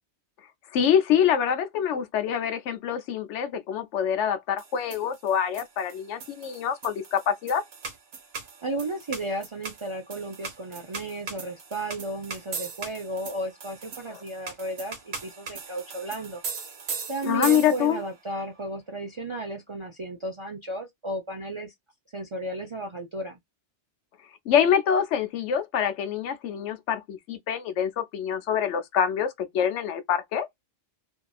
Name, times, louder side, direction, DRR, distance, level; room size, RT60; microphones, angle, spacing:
voice 1, 0.7-7.6 14.1-14.2 17.2-18.0 24.5-30.5, left 8 dB, 85° left, 1.0 m, -25 dB
sound 1, 4.6-18.1, right 5 dB, 65° right, 1.1 m, -39 dB
voice 2, 8.6-16.4 17.1-21.7 22.1-23.4, right 2 dB, 50° right, 0.3 m, -34 dB
2.7 x 2.5 x 2.3 m
omnidirectional pair, 1.2 m